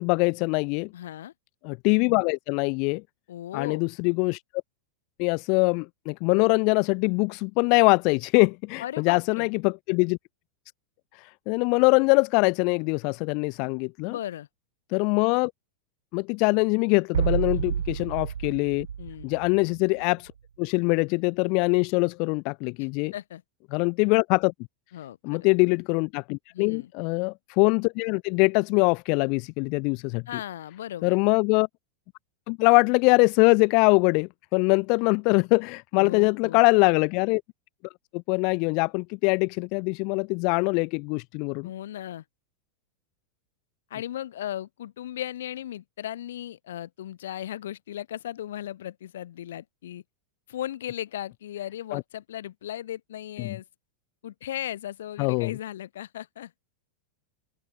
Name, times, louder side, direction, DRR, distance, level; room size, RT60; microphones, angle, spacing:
voice 1, 0.0-0.9 1.6-3.0 3.5-4.4 5.2-10.2 11.1-14.2 14.9-15.5 16.1-18.9 19.2-20.3 20.6-23.1 23.7-24.5 25.2-30.2 31.0-31.7 32.5-37.4 38.1-41.7 51.9-52.0 53.4-53.6 55.2-55.6, left 33 dB, 45° left, 0.5 m, -23 dB
voice 2, 0.9-1.3 3.3-3.8 8.8-9.5 14.1-14.5 17.5-17.6 19.0-19.3 23.1-23.4 24.9-25.5 26.5-26.9 30.3-31.2 35.9-36.6 41.6-42.2 43.9-50.0 50.5-53.6 54.2-56.5, left 12 dB, 60° left, 6.8 m, -36 dB
sound 1, 17.1-20.0, right 7 dB, 70° right, 0.5 m, -29 dB
open air
figure-of-eight pair, 90°, 0 cm